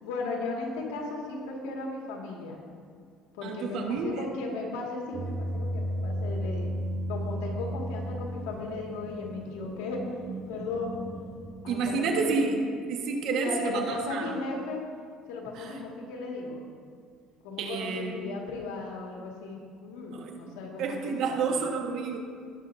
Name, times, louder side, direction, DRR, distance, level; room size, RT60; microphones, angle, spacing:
voice 1, 0.0-2.6 3.3-6.7 7.1-10.1 10.5-11.0 11.6-12.5 13.3-14.8 15.3-16.6 17.4-21.5, left 3 dB, 90° left, -1 dB, 2.1 m, -36 dB
voice 2, 3.4-4.3 11.7-12.6 12.9-14.4 15.5-15.8 17.6-18.2 20.1-20.3 20.8-22.2, right 4 dB, 65° right, 2 dB, 1.5 m, -30 dB
sound 1, 5.1-11.8, equal, 25° right, 2.3 m, -34 dB
19.0 x 7.4 x 2.7 m, 2.1 s
supercardioid pair, 105°, 0 cm